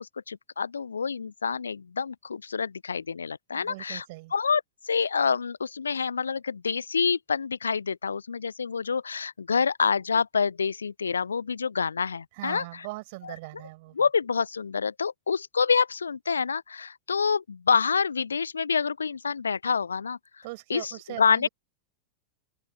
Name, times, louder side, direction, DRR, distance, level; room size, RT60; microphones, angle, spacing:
voice 1, 0.0-4.0 4.3-12.9 13.2-13.3 13.9-20.2 20.7-21.5, left 5 dB, 75° left, 1.0 m, -27 dB
voice 2, 3.5-4.3 12.3-14.0 20.4-21.5, right 23 dB, 50° right, 6.0 m, -40 dB
open air
figure-of-eight pair, 90°, 0 cm